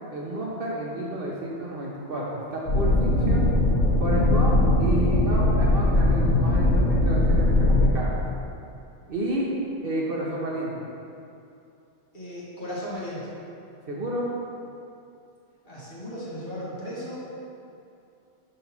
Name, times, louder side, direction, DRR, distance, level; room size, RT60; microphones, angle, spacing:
voice 1, 0.1-3.5 4.0-8.1 9.1-9.5 9.8-10.8 13.9-14.3, right 1 dB, 55° right, -4 dB, 0.9 m, -31 dB
sound 1, 2.7-7.9, left 1 dB, 85° left, 1.3 m, -20 dB
voice 2, 12.1-13.3 15.6-17.2, equal, 40° left, -9 dB, 1.9 m, -36 dB
5.3 x 4.0 x 5.8 m, 2.6 s
omnidirectional pair, 1.3 m